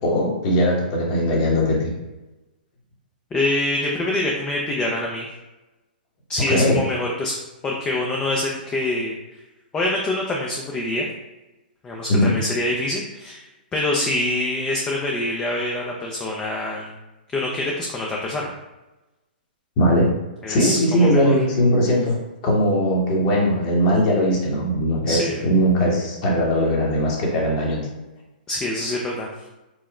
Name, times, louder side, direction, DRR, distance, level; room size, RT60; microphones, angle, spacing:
voice 1, 0.0-1.9 6.5-6.9 12.1-12.4 19.8-20.1 20.5-27.8, equal, 40° left, -3 dB, 1.3 m, -20 dB
voice 2, 3.3-5.3 6.3-7.3 7.6-9.2 9.7-11.1 11.8-13.4 13.7-16.9 17.3-18.5 20.4-21.3 25.1-25.4 28.5-29.3, left 1 dB, 15° left, -1 dB, 0.5 m, -25 dB
4.6 x 2.1 x 4.2 m, 1.0 s
hypercardioid pair, 130°, 5 cm